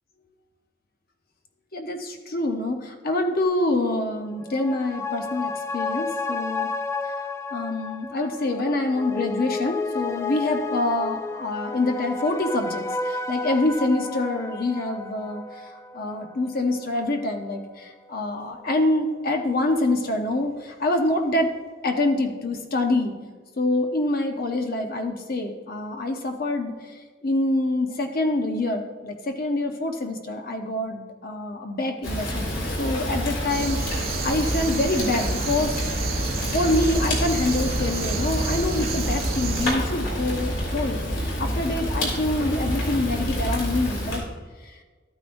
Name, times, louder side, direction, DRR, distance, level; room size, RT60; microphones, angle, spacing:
voice 1, 1.7-6.7 7.0-7.1 7.5-21.5 21.8-23.1 23.6-32.5 32.8-36.2 36.5-44.3 44.6-44.8, left 2 dB, 50° left, 4 dB, 0.9 m, -26 dB
sound 1, 4.3-17.2 17.5-17.6, left 3 dB, 15° left, 0.3 m, -32 dB
Fire, 32.0-44.2, equal, 75° left, 2.9 m, -27 dB
sound 2, 33.5-39.7, right 6 dB, 50° right, 0.6 m, -32 dB
12.5 x 8.8 x 2.6 m, 1.4 s
head